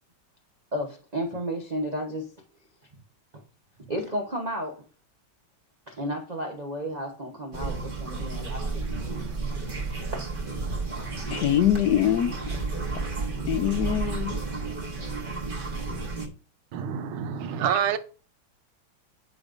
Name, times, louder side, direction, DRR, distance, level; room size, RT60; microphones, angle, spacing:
voice 1, 0.7-2.3 3.9-4.8 5.9-9.3 9.6-9.7 10.0-10.2, equal, 55° right, 2 dB, 0.4 m, -33 dB
sound 1, 7.5-16.3, right 3 dB, 30° right, 1.1 m, -32 dB
voice 2, 11.3-12.6 12.9-13.1 13.4-14.6, left 11 dB, 80° left, 8 dB, 0.9 m, -24 dB
voice 3, 16.7-18.0, right 8 dB, 80° right, 10 dB, 1.5 m, -27 dB
9.2 x 5.1 x 2.5 m, 0.37 s
omnidirectional pair, 2.2 m